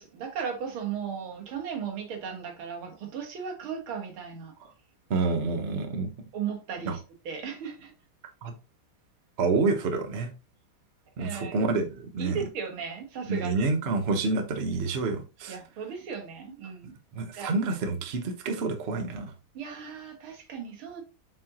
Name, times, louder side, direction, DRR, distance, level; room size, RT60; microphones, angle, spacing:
voice 1, 0.0-4.5 6.3-7.9 11.2-11.6 12.2-13.7 15.5-16.9 17.4-17.6 19.5-21.0, right 7 dB, 90° right, 2.3 m, -36 dB
voice 2, 5.1-6.1 6.8-7.0 8.4-8.5 9.4-10.3 11.2-12.4 13.3-15.6 17.1-19.3, right 3 dB, 40° right, 0.9 m, -28 dB
7.6 x 4.3 x 2.9 m
omnidirectional pair, 2.2 m